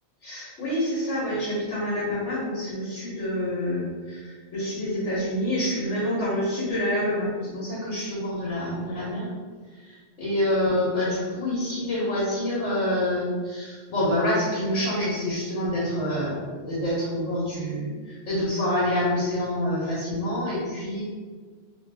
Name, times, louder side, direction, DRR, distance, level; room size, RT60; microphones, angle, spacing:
voice 1, 0.2-9.3 9.8-21.0, left 1 dB, 85° left, -8 dB, 1.4 m, -27 dB
3.0 x 2.7 x 3.3 m, 1.5 s
omnidirectional pair, 1.2 m